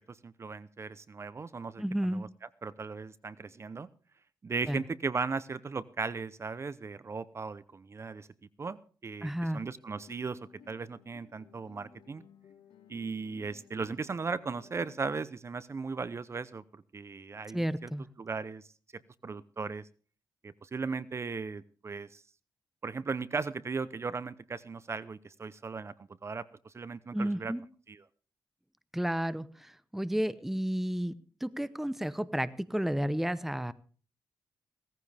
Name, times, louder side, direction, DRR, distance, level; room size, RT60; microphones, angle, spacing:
voice 1, 0.0-2.3 2.6-3.9 4.4-8.3 8.6-10.4 10.7-12.2 12.9-17.9 18.2-18.6 19.2-19.9 20.4-22.2 22.8-25.9 26.2-27.5 27.9-28.0, right 4 dB, 35° right, 17 dB, 0.7 m, -37 dB
voice 2, 1.8-2.2 4.7-4.8 9.2-9.6 17.5-18.1 27.1-27.6 28.9-31.1 31.4-33.7, equal, 5° right, 15 dB, 0.8 m, -32 dB
Guitar, 9.9-15.0, left 6 dB, 90° left, 1.9 m, -57 dB
17.5 x 14.5 x 3.5 m, 0.40 s
cardioid pair, 90°, 8 cm